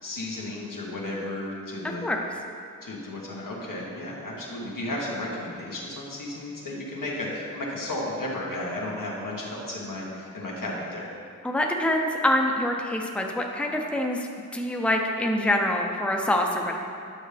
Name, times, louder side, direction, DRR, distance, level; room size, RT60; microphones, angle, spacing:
voice 1, 0.0-2.1 2.8-11.1, left 1 dB, 85° left, -4 dB, 1.4 m, -33 dB
voice 2, 11.4-14.3 14.5-16.8, left 1 dB, 5° left, 1 dB, 0.6 m, -25 dB
8.9 x 5.6 x 3.4 m, 2.4 s
wide cardioid pair, 55°, 32 cm